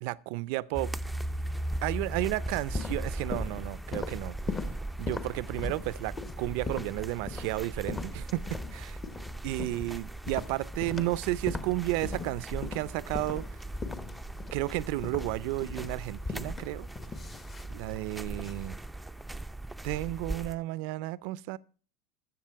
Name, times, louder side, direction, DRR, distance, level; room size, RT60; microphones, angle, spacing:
voice 1, 0.0-0.9 1.8-4.5 5.0-8.4 8.7-9.0 9.4-13.5 14.5-16.9 17.7-18.8 19.8-21.6, right 18 dB, 65° right, 0.5 m, -32 dB
sound 1, 0.7-20.6, right 1 dB, 5° right, 0.5 m, -39 dB
sound 2, 2.5-18.8, left 4 dB, 20° left, 1.0 m, -40 dB
14.0 x 7.2 x 4.6 m
supercardioid pair, 115°, 0 cm